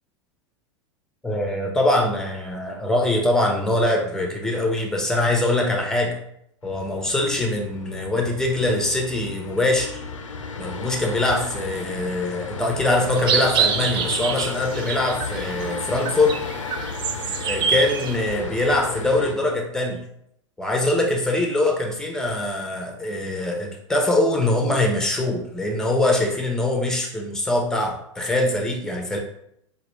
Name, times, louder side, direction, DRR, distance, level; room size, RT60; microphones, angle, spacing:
voice 1, 1.2-6.1 6.6-10.0 10.6-16.3 17.5-20.0 20.6-29.2, left 2 dB, 5° left, 1 dB, 0.8 m, -23 dB
sound 1, 6.6-19.3, left 4 dB, 75° left, 0.5 m, -34 dB
sound 2, 13.2-15.6 15.9-18.2, right 7 dB, 30° right, 0.4 m, -25 dB
4.9 x 2.3 x 3.2 m, 0.73 s
figure-of-eight pair, 90°, 16 cm